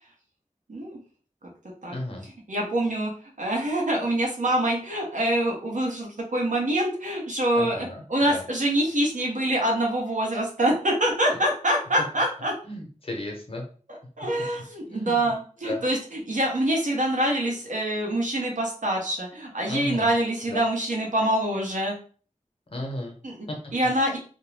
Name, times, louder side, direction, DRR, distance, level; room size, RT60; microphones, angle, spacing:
voice 1, 1.9-2.3 7.5-8.4 12.6-13.6 14.9-15.3 15.6-15.8 19.7-20.1 20.5-20.6 22.7-23.2 23.5-23.6, left 1 dB, 45° left, 1 dB, 0.8 m, -34 dB
voice 2, 2.5-12.5 14.2-22.0 23.2-23.5 23.7-24.2, right 1 dB, 80° right, -1 dB, 0.9 m, -25 dB
2.5 x 2.2 x 3.2 m, 0.41 s
wide cardioid pair, 55°, 13 cm